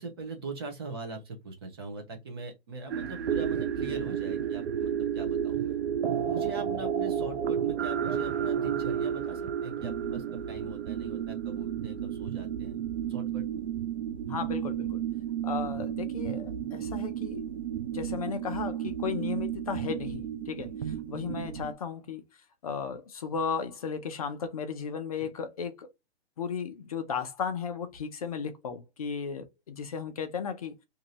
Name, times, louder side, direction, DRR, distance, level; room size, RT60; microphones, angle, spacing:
voice 1, 0.0-5.8 6.3-12.8 13.1-13.6 25.2-25.3, right 3 dB, 25° right, 0.6 m, -41 dB
sound 1, 2.9-21.7, right 9 dB, 80° right, 0.6 m, -32 dB
voice 2, 14.3-15.0 15.4-17.4 17.9-22.2 22.6-25.9 26.4-30.7, left 6 dB, 35° left, 0.5 m, -35 dB
2.7 x 2.6 x 3.0 m
hypercardioid pair, 160°, 33 cm